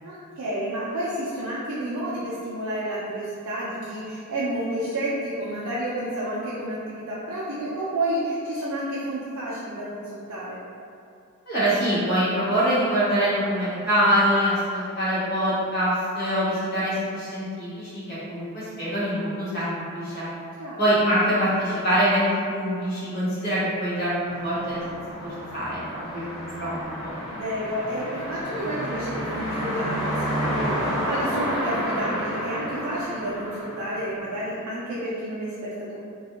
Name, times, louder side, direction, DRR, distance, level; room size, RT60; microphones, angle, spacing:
voice 1, 0.0-10.6 20.6-20.8 27.3-36.0, right 1 dB, 80° right, -7 dB, 0.5 m, -30 dB
voice 2, 11.5-20.3 20.8-25.8 26.1-27.1, equal, 45° left, -11 dB, 0.9 m, -24 dB
sound 1, 24.3-34.5, equal, 60° left, 1.2 m, -30 dB
2.4 x 2.3 x 2.8 m, 2.4 s
head